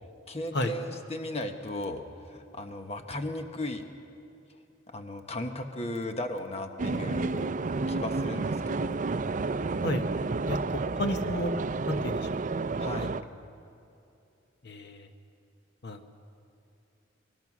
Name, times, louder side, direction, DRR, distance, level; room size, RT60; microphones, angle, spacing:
voice 1, 0.3-3.9 4.9-7.5 7.9-9.0 12.8-13.2, left 1 dB, 35° left, 5 dB, 1.1 m, -36 dB
sound 1, 6.8-13.2, right 3 dB, 45° right, 0.5 m, -30 dB
voice 2, 10.5-11.5 11.9-12.3 13.0-13.2 14.6-15.1 15.8-16.1, left 1 dB, 60° left, 6 dB, 1.2 m, -32 dB
24.5 x 21.0 x 6.1 m, 2.6 s
head